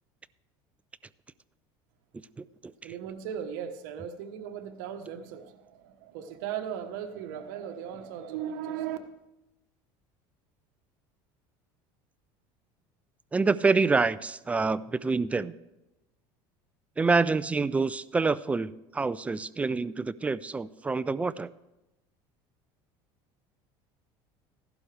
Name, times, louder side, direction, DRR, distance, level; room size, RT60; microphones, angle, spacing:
voice 1, 2.8-9.0, right 9 dB, 85° right, 7 dB, 1.1 m, -37 dB
voice 2, 13.3-15.5 17.0-21.5, right 4 dB, 10° right, 16 dB, 0.3 m, -26 dB
15.5 x 11.5 x 3.3 m, 0.96 s
supercardioid pair, 125°, 11 cm